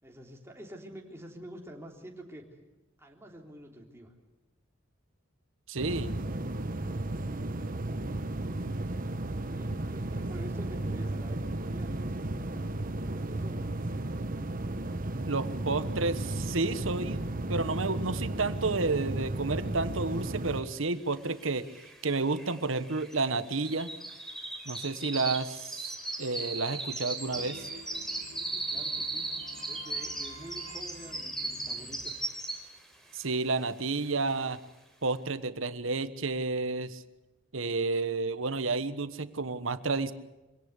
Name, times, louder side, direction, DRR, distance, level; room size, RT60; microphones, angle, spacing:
voice 1, 0.0-2.4 3.0-4.1 9.5-13.7 28.4-32.2, equal, 15° right, 1 dB, 3.5 m, -48 dB
voice 2, 5.7-6.1 15.2-21.7 22.0-23.9 24.6-27.7 33.1-34.6 35.0-37.0 37.5-40.1, right 3 dB, 85° right, 13 dB, 1.3 m, -31 dB
sound 1, 5.8-20.6, right 2 dB, 45° right, 1.2 m, -34 dB
sound 2, 21.1-21.2 21.4-32.9 33.3-33.6 34.0-34.1, right 2 dB, ahead, 4.2 m, -37 dB
sound 3, 27.3-32.9, right 2 dB, 65° right, 3.8 m, -51 dB
25.0 x 17.5 x 8.3 m, 1.0 s
head